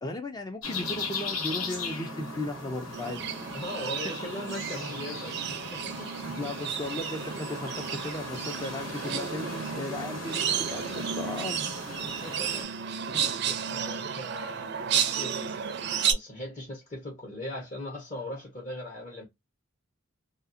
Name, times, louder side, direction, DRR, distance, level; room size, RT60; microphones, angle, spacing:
voice 1, 0.0-3.3 6.4-11.7 13.1-13.3, left 2 dB, 20° left, 0.4 m, -36 dB
sound 1, 0.6-12.6, left 2 dB, 85° left, 1.6 m, -38 dB
sound 2, 2.9-16.1, right 8 dB, 55° right, 0.4 m, -33 dB
voice 2, 3.5-6.1 7.4-7.7 12.1-12.7 13.1-19.3, left 1 dB, 40° left, 0.9 m, -40 dB
2.6 x 2.4 x 2.4 m
head